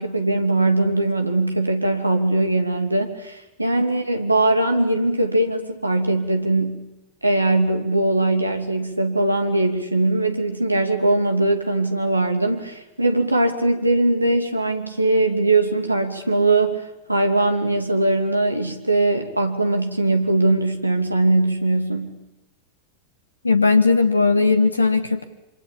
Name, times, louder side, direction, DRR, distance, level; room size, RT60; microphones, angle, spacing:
voice 1, 0.0-6.8 7.2-22.2, right 2 dB, 85° right, 6 dB, 2.6 m, -21 dB
voice 2, 23.4-25.3, left 4 dB, 80° left, 12 dB, 1.3 m, -18 dB
27.0 x 25.5 x 8.7 m, 0.89 s
figure-of-eight pair, 90°, 0 cm